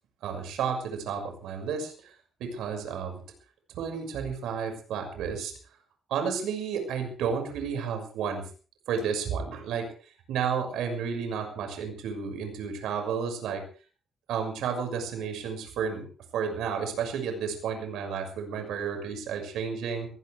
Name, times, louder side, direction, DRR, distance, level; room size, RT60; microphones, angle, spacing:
voice 1, 0.2-1.9 2.4-3.2 3.7-5.5 6.1-8.4 8.9-9.8 10.3-13.6 14.3-16.0 16.3-20.1, right 6 dB, 90° right, 5 dB, 6.2 m, -31 dB
22.0 x 17.5 x 3.5 m, 0.38 s
cardioid pair, 120°, 0 cm